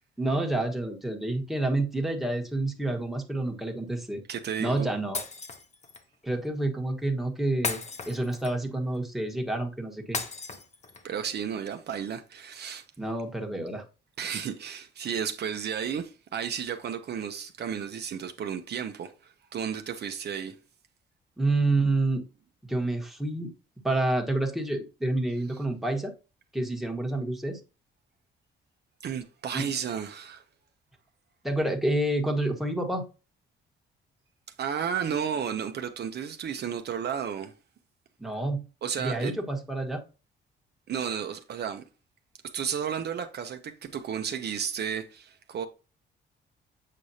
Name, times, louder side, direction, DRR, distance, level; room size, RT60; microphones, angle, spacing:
voice 1, 0.2-4.2 4.6-5.2 6.2-10.2 13.0-13.8 21.4-22.2 22.7-23.5 23.8-26.1 26.5-27.6 29.5-29.6 31.4-33.0 38.2-38.6 39.0-40.0, right 2 dB, ahead, 1.3 m, -28 dB
voice 2, 4.3-4.9 11.0-12.8 14.2-20.5 29.0-30.4 34.6-37.5 38.8-39.3 40.9-41.8 42.5-45.7, right 8 dB, 55° right, 0.7 m, -33 dB
Shatter, 5.1-6.0 7.6-8.7 10.1-11.1, left 4 dB, 35° left, 1.0 m, -35 dB
7.6 x 4.9 x 2.8 m
cardioid pair, 90°, 20 cm